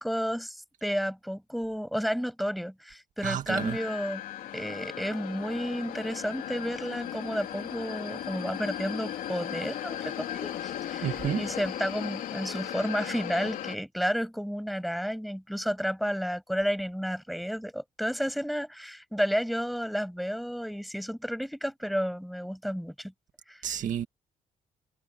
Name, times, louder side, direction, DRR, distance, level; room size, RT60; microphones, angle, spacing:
voice 1, 0.0-4.2 4.5-23.1 23.5-23.6, equal, ahead, 8.0 m, -32 dB
voice 2, 3.2-3.8 11.0-11.5 23.6-24.1, right 10 dB, 65° right, 2.0 m, -30 dB
sound 1, 3.6-13.8, left 11 dB, 80° left, 3.1 m, -37 dB
cardioid pair, 120°, 14 cm